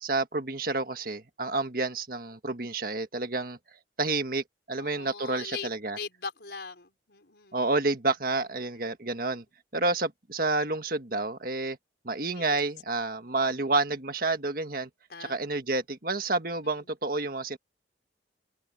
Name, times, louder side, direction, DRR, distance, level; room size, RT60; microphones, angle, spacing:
voice 1, 0.0-3.6 4.0-6.0 7.5-9.4 9.7-11.8 12.1-14.9 15.3-17.6, right 3 dB, 50° right, 1.6 m, -29 dB
voice 2, 4.8-7.6 8.7-9.0 12.2-12.6 15.1-15.4 16.6-16.9, left 5 dB, 65° left, 4.8 m, -41 dB
head